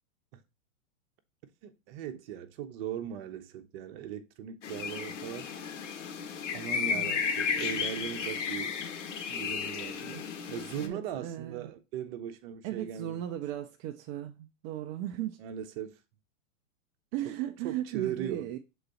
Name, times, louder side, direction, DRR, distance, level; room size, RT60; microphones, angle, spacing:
voice 1, 1.6-5.5 6.5-8.8 9.3-10.0 10.5-13.2 15.4-16.0 17.2-17.3 17.6-18.5, right 9 dB, 45° right, 1.0 m, -39 dB
sound 1, 4.6-10.9, left 6 dB, 65° left, 1.3 m, -34 dB
voice 2, 10.8-11.7 12.6-15.4 17.1-18.6, right 12 dB, 30° right, 0.4 m, -37 dB
6.7 x 4.0 x 4.3 m
hypercardioid pair, 125°, 40 cm